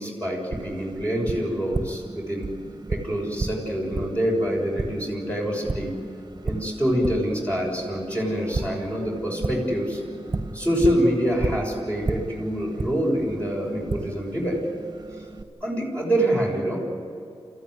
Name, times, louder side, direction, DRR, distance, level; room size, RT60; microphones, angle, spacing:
voice 1, 0.0-2.5 2.9-6.0 6.4-10.0 10.5-14.6 15.6-16.8, equal, 15° left, -3 dB, 6.4 m, -26 dB
Tap, 0.5-15.4, right 3 dB, 40° right, 1.5 m, -34 dB
28.5 x 15.0 x 9.8 m, 2.6 s
wide cardioid pair, 70°, 10 cm